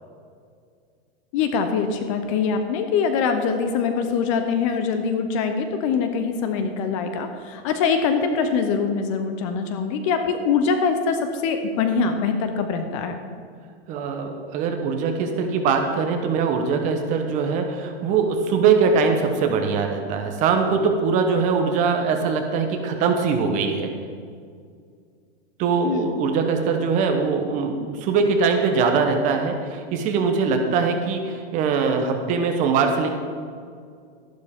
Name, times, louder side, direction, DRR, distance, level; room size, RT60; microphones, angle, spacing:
voice 1, 1.3-13.2 25.8-26.1, left 5 dB, 30° left, 7 dB, 0.7 m, -23 dB
voice 2, 13.9-23.9 25.6-33.1, right 5 dB, 25° right, 5 dB, 0.9 m, -22 dB
12.5 x 11.5 x 3.6 m, 2.2 s
supercardioid pair, 160°, 32 cm